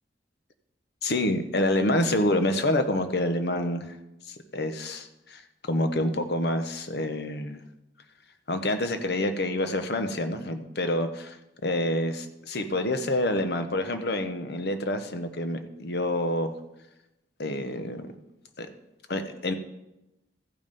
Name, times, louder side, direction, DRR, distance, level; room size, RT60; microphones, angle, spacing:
voice 1, 1.0-3.9 4.3-7.6 8.5-11.4 11.6-16.5 17.4-18.1 18.6-18.7 19.1-19.5, left 1 dB, 65° left, 8 dB, 0.8 m, -27 dB
14.0 x 5.4 x 5.3 m, 0.93 s
head